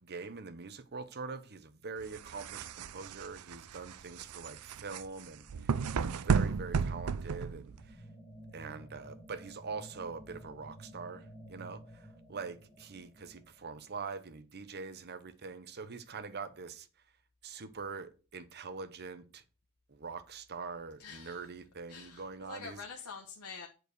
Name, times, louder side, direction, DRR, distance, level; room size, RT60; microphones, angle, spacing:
voice 1, 0.0-8.0 8.5-16.9 17.4-19.4 19.9-22.8, right 4 dB, 50° right, 0.9 m, -44 dB
sound 1, 2.0-7.9, right 5 dB, 80° right, 0.5 m, -33 dB
sound 2, 7.6-14.4, right 1 dB, 10° left, 2.1 m, -53 dB
voice 2, 21.0-21.5 21.9-23.7, left 5 dB, 90° left, 1.1 m, -46 dB
7.8 x 4.7 x 6.5 m
head